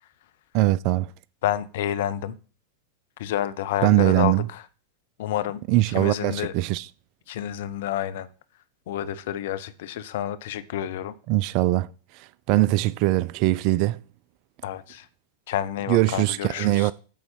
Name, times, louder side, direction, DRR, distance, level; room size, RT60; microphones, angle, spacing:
voice 1, 0.5-1.1 3.8-4.5 5.7-6.9 11.3-11.9 12.5-14.0 15.9-16.9, right 16 dB, 45° right, 0.3 m, -21 dB
voice 2, 1.4-2.4 3.2-4.6 5.2-5.6 5.9-6.5 7.3-8.3 8.9-11.1 14.6-15.1 15.5-16.9, left 11 dB, 55° left, 0.7 m, -29 dB
8.6 x 4.1 x 6.8 m
figure-of-eight pair, 90°, 0 cm